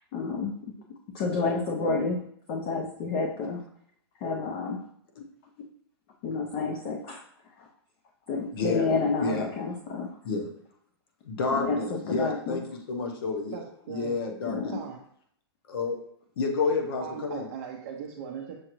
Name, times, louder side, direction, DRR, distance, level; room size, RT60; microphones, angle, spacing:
voice 1, 0.1-0.5 1.1-2.2 2.5-3.6 4.2-4.8 6.2-7.2 8.3-10.1 11.5-12.6 14.4-14.8, left 4 dB, 30° left, 1 dB, 0.4 m, -29 dB
voice 2, 8.5-8.9 9.2-9.5 10.2-10.5 11.3-12.6 12.9-13.6 13.9-14.7 15.7-16.0 16.4-17.4, left 3 dB, 60° left, 3 dB, 0.9 m, -29 dB
voice 3, 13.5-14.1 14.7-15.0 17.0-18.6, right 7 dB, 35° right, 0 dB, 0.5 m, -39 dB
6.4 x 2.4 x 3.0 m, 0.67 s
supercardioid pair, 170°, 14 cm